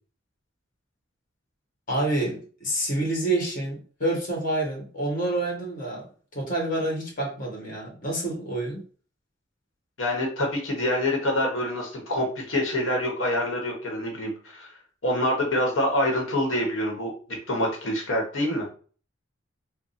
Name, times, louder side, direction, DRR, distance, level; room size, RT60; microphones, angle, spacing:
voice 1, 1.9-6.1 6.3-8.8, right 2 dB, 45° left, -1 dB, 1.5 m, -28 dB
voice 2, 10.0-14.7 15.0-17.1 17.5-18.7, left 1 dB, 90° left, 1 dB, 1.1 m, -26 dB
3.7 x 2.2 x 4.1 m, 0.40 s
head